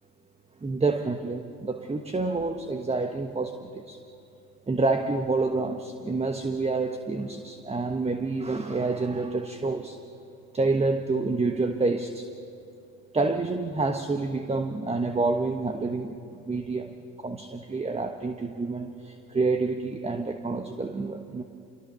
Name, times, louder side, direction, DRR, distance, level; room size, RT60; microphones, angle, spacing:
voice 1, 0.6-4.0 4.7-10.0 10.5-12.3 13.1-16.2 16.5-21.4, right 3 dB, 15° right, 6 dB, 1.2 m, -28 dB
27.5 x 22.5 x 6.9 m, 2.6 s
supercardioid pair, 90°, 42 cm